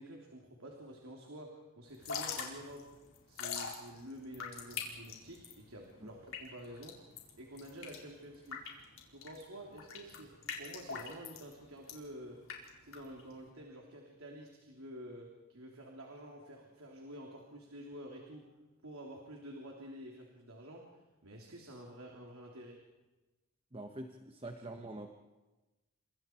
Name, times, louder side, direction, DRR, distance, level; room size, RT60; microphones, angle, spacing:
voice 1, 0.0-2.8 3.3-7.0 7.3-8.6 9.1-10.3 10.6-12.4 12.8-18.4 18.8-22.8, equal, 75° right, 0 dB, 3.4 m, -49 dB
Drip / Trickle dribble, 1.9-13.5, left 6 dB, 65° left, 4.6 m, -44 dB
voice 2, 23.7-25.1, right 1 dB, 25° right, 4 dB, 1.4 m, -45 dB
30.0 x 26.5 x 4.7 m, 1.1 s
head